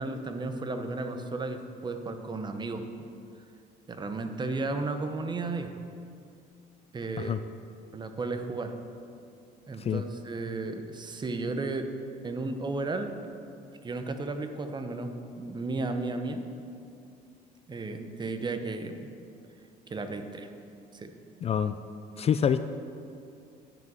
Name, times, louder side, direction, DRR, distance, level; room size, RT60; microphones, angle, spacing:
voice 1, 0.0-2.9 3.9-5.7 6.9-7.4 7.9-8.8 9.7-11.9 12.2-13.2 13.8-16.4 17.7-19.1 19.9-20.5 20.9-21.1, right 3 dB, 25° right, 7 dB, 0.9 m, -34 dB
voice 2, 21.4-21.7 22.2-22.6, left 8 dB, 35° left, 11 dB, 0.4 m, -26 dB
10.5 x 6.1 x 7.3 m, 2.5 s
cardioid pair, 110°, 17 cm